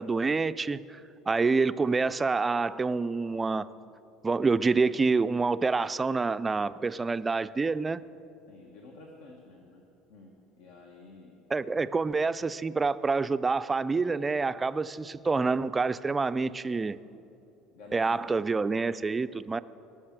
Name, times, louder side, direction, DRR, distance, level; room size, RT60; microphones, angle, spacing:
voice 1, 0.0-3.7 4.2-8.0 11.5-17.0 17.9-19.6, right 4 dB, 15° right, 14 dB, 0.3 m, -27 dB
voice 2, 8.5-9.8 10.1-11.4 11.7-11.9 17.7-18.4 19.3-19.4, left 3 dB, 80° left, 1 dB, 1.4 m, -51 dB
18.5 x 6.3 x 7.4 m, 2.7 s
cardioid pair, 130°, 0 cm